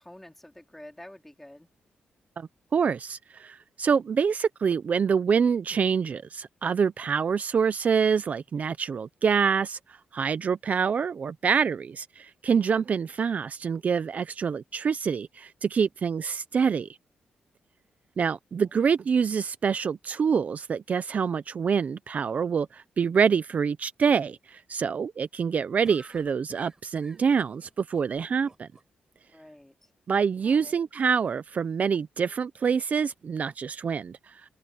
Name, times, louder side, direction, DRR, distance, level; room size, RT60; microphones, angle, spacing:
voice 1, 0.0-1.7 18.8-18.9 29.3-29.9 30.4-30.8, left 1 dB, 5° left, 3.9 m, -48 dB
voice 2, 2.4-9.8 10.1-16.9 18.2-28.7 30.1-34.5, right 6 dB, 45° right, 0.6 m, -26 dB
sound 1, 25.8-28.8, right 2 dB, 20° right, 6.0 m, -52 dB
cardioid pair, 115°, 3 cm